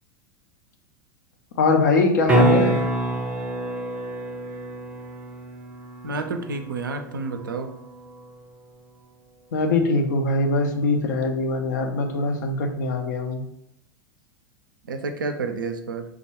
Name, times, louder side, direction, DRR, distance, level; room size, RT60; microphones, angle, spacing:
voice 1, 1.6-2.8 9.5-13.4, left 3 dB, 60° left, 4 dB, 0.5 m, -22 dB
sound 1, 2.3-8.3 13.0-13.1, right 2 dB, 10° right, 0.6 m, -26 dB
voice 2, 6.0-7.7 14.9-16.1, right 3 dB, 75° right, 7 dB, 0.4 m, -29 dB
3.4 x 2.2 x 3.3 m, 0.80 s
figure-of-eight pair, 85°, 11 cm